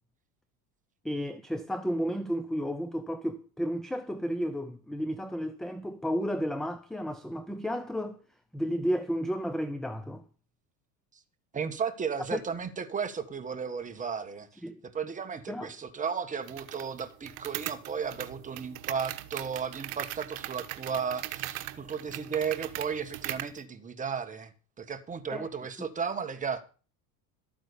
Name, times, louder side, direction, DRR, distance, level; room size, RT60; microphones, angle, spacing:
voice 1, 1.0-8.2 8.5-10.2 12.3-12.4 14.6-14.8 15.5-15.7 25.3-25.5, equal, ahead, 0.6 m, -32 dB
voice 2, 11.5-14.6 14.9-24.5 24.8-26.6, right 6 dB, 20° right, 1.5 m, -34 dB
sound 1, 16.5-23.6, right 16 dB, 65° right, 1.3 m, -40 dB
13.0 x 8.9 x 7.0 m
cardioid pair, 140°, 41 cm